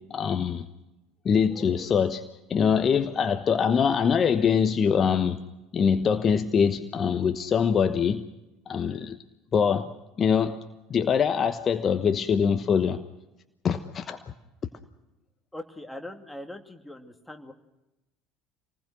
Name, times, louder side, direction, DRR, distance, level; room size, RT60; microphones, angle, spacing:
voice 1, 0.1-0.7 1.2-2.2 2.5-5.4 5.7-8.2 8.7-9.2 9.5-9.9 10.2-10.6 10.9-13.0 13.6-14.2, left 7 dB, 35° left, 9 dB, 1.1 m, -23 dB
voice 2, 15.5-17.5, left 1 dB, 5° left, 4 dB, 2.5 m, -41 dB
27.5 x 20.0 x 6.3 m, 0.98 s
figure-of-eight pair, 65°, 0 cm